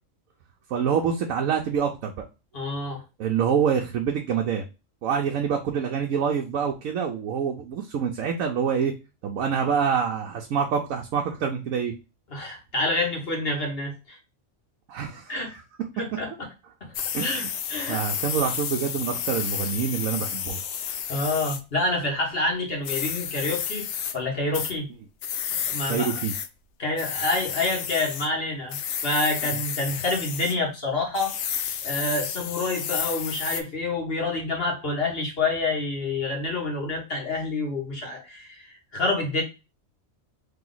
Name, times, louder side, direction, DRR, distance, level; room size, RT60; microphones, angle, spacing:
voice 1, 0.7-2.1 3.2-4.6 5.0-8.9 9.2-11.9 14.9-15.6 17.1-17.5 17.9-20.6 25.9-26.3, right 7 dB, 75° right, 2 dB, 1.1 m, -26 dB
voice 2, 2.5-3.0 12.3-14.2 15.3-15.5 16.0-16.5 16.8-17.4 17.7-18.0 21.1-23.9 24.1-24.9 25.5-26.1 26.8-39.4, left 2 dB, 45° left, 0 dB, 1.5 m, -28 dB
sound 1, 16.9-21.6 22.8-24.1 24.5-24.7 25.2-26.5 27.0-28.3 28.7-30.5 31.1-33.6, left 8 dB, 65° left, 0.8 m, -31 dB
3.4 x 3.0 x 3.8 m, 0.28 s
omnidirectional pair, 1.4 m